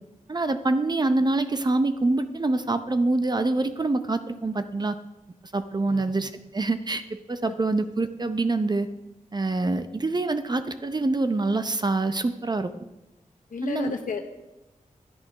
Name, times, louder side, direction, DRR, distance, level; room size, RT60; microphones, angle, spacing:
voice 1, 0.3-5.0 5.5-8.9 9.3-12.7 13.6-13.9, right 2 dB, 30° right, 10 dB, 0.7 m, -25 dB
voice 2, 13.5-14.2, left 5 dB, 75° left, 4 dB, 0.9 m, -32 dB
11.0 x 9.6 x 5.7 m, 0.97 s
wide cardioid pair, 100°, 14 cm